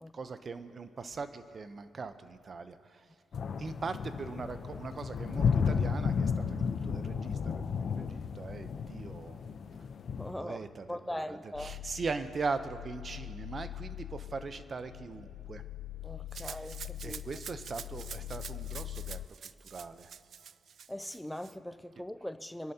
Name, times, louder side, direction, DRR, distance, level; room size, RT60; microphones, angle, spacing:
voice 1, 0.1-3.1 3.6-9.6 10.3-15.6 16.4-16.7 17.0-19.2 19.7-20.1, right 4 dB, 40° right, 0.7 m, -40 dB
sound 1, 3.3-10.3, left 6 dB, 55° left, 0.7 m, -33 dB
voice 2, 10.1-10.6 10.9-11.7 16.0-17.2 20.9-22.7, left 1 dB, 5° left, 0.4 m, -41 dB
sound 2, 11.5-19.3, left 15 dB, 85° left, 0.3 m, -43 dB
Rattle (instrument), 16.3-21.5, right 7 dB, 55° right, 0.4 m, -46 dB
26.0 x 11.0 x 2.9 m
cardioid pair, 90°, 0 cm